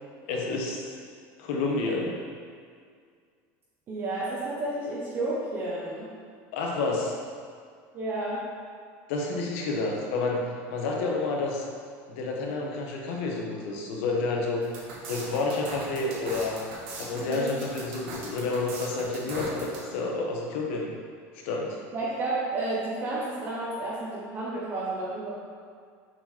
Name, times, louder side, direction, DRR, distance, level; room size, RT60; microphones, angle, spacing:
voice 1, 0.3-1.0 1.4-2.2 6.5-7.1 9.1-10.4 10.7-11.6 12.1-14.6 15.0-16.6 17.0-20.9 21.3-21.8, left 3 dB, 80° left, -1 dB, 1.3 m, -29 dB
voice 2, 3.9-6.1 7.9-8.4 17.1-17.6 21.9-25.3, right 2 dB, 30° right, -7 dB, 1.1 m, -31 dB
sound 1, 14.6-19.8, right 3 dB, 75° right, 1.6 m, -39 dB
6.8 x 4.4 x 4.5 m, 2.1 s
supercardioid pair, 140°, 7 cm